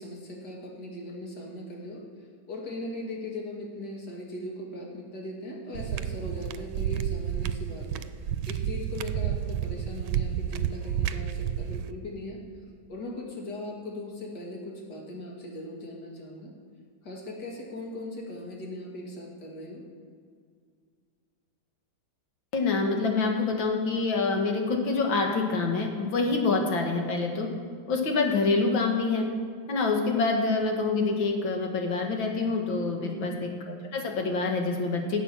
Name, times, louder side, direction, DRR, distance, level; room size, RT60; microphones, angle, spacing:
voice 1, 0.0-2.0 2.5-8.1 8.5-12.4 12.9-16.5 17.0-19.8 33.0-33.4, left 1 dB, 55° left, -2 dB, 2.8 m, -39 dB
sound 1, 5.7-11.9, right 10 dB, 85° right, 1.4 m, -30 dB
voice 2, 22.5-27.5 27.9-29.3 29.7-35.2, left 3 dB, 70° left, 2 dB, 2.3 m, -26 dB
16.0 x 8.1 x 6.1 m, 2.1 s
omnidirectional pair, 2.2 m